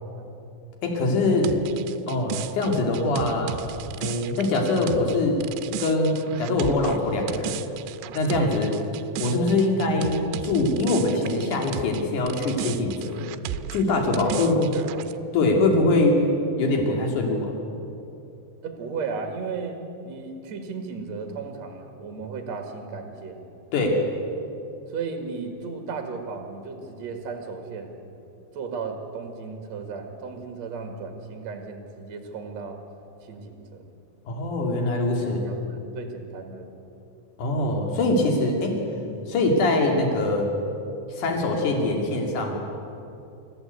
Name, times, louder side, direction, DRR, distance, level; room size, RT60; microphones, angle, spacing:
voice 1, 0.8-1.5 2.1-3.6 4.0-5.4 5.8-7.6 8.1-8.7 9.2-10.2 10.4-13.2 13.7-14.7 15.3-16.2 16.5-17.5 23.7-24.0 34.3-35.4 37.4-38.7 39.3-40.5 41.1-42.6, left 2 dB, 50° left, 1 dB, 3.6 m, -23 dB
sound 1, 1.4-12.0 12.3-15.1, right 11 dB, 85° right, 2.9 m, -35 dB
voice 2, 14.3-15.0 18.6-19.8 20.0-23.4 24.9-27.9 28.5-32.8 33.2-33.9 35.2-36.7 39.0-39.2, right 5 dB, 55° right, 4 dB, 2.2 m, -35 dB
25.5 x 14.0 x 8.1 m, 2.8 s
omnidirectional pair, 5.3 m